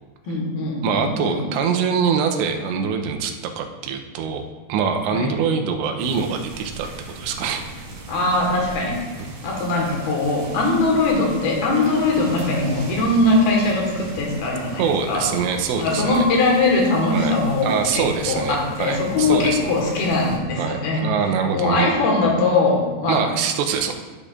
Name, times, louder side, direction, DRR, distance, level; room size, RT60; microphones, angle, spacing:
voice 1, 0.3-1.4 5.1-5.3 8.1-9.0 9.4-15.3 15.8-21.0 21.5-23.2, left 2 dB, 65° left, -1 dB, 3.0 m, -21 dB
voice 2, 0.8-7.6 9.2-9.3 14.8-16.3 17.1-17.3 17.6-19.6 20.6-21.9 23.1-23.9, right 6 dB, 85° right, 4 dB, 2.9 m, -24 dB
sound 1, 6.0-20.4, right 2 dB, 65° right, 2.6 m, -38 dB
12.5 x 6.7 x 2.4 m, 1.3 s
omnidirectional pair, 5.1 m